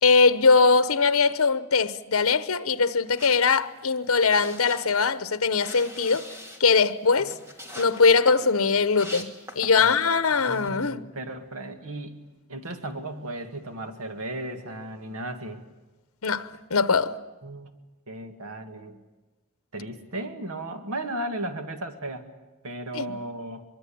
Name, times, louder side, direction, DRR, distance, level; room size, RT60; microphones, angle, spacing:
voice 1, 0.0-6.3 6.6-7.3 7.8-11.1 16.2-17.2 22.9-23.2, left 4 dB, 80° left, 1.0 m, -21 dB
sound 1, 3.1-10.0 10.4-10.7, left 1 dB, 15° right, 2.5 m, -43 dB
voice 2, 10.4-12.1 12.5-15.6 17.4-17.7 18.1-19.0 19.7-22.3 22.6-23.6, right 1 dB, 85° right, 2.2 m, -35 dB
23.5 x 23.0 x 8.7 m
head